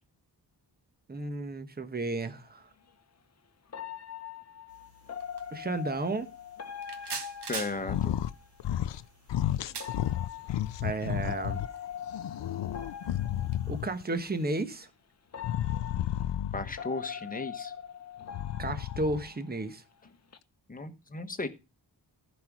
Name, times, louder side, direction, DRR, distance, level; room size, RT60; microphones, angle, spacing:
voice 1, 1.1-2.6 5.5-6.3 10.8-11.6 13.7-14.9 18.6-19.8, right 2 dB, 20° right, 1.1 m, -33 dB
sound 1, 2.2-2.4 3.7-8.5 9.7-14.0 14.8-14.9 15.3-19.7 20.1-20.4, left 8 dB, 40° left, 0.9 m, -42 dB
sound 2, 4.7-14.6, right 5 dB, 70° right, 1.8 m, -47 dB
voice 2, 7.5-8.2 16.5-17.7 20.7-21.5, left 3 dB, 20° left, 1.3 m, -35 dB
sound 3, 7.8-8.3 8.6-9.0 9.3-11.7 12.1-14.0 15.4-16.8 18.2-19.3, left 12 dB, 85° left, 0.6 m, -32 dB
15.0 x 5.4 x 6.1 m
wide cardioid pair, 160°, 42 cm